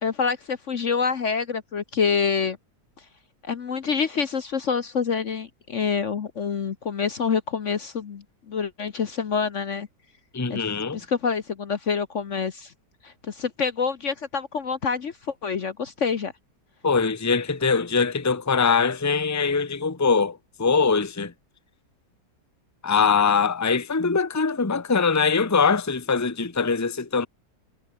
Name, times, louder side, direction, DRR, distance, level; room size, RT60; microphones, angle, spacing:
voice 1, 0.0-2.6 3.4-9.9 10.5-10.7 10.9-12.7 13.0-16.3, left 6 dB, 50° left, 1.3 m, -27 dB
voice 2, 10.3-11.0 16.8-21.3 22.8-27.3, left 5 dB, 10° left, 1.1 m, -22 dB
omnidirectional pair, 1.8 m